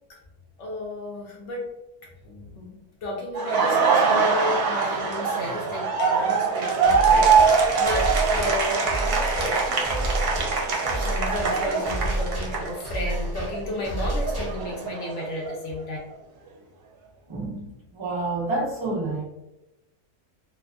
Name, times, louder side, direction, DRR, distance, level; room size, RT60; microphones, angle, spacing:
voice 1, 0.6-1.6 2.2-10.2 10.8-16.0, left 1 dB, 65° left, -2 dB, 0.8 m, -33 dB
Laughter, 3.3-13.2 13.5-15.5, right 5 dB, 75° right, 1.1 m, -23 dB
sound 1, 6.8-14.8, right 1 dB, 15° left, 0.7 m, -30 dB
voice 2, 17.3-19.2, right 2 dB, 35° right, -6 dB, 0.4 m, -29 dB
2.7 x 2.4 x 2.2 m, 0.96 s
omnidirectional pair, 1.6 m